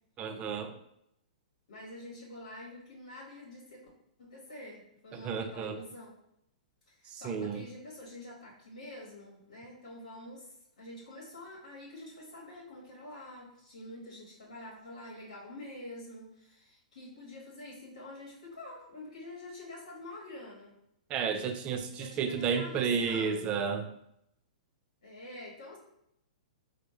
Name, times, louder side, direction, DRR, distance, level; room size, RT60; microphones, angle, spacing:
voice 1, 0.2-0.7 5.1-5.8 7.1-7.7 21.1-23.9, right 6 dB, 30° right, 6 dB, 0.5 m, -32 dB
voice 2, 1.7-3.9 4.2-6.2 6.9-20.7 21.9-23.6 25.0-25.8, left 1 dB, 75° left, -5 dB, 1.0 m, -47 dB
4.2 x 2.1 x 3.2 m, 0.78 s
figure-of-eight pair, 115°, 4 cm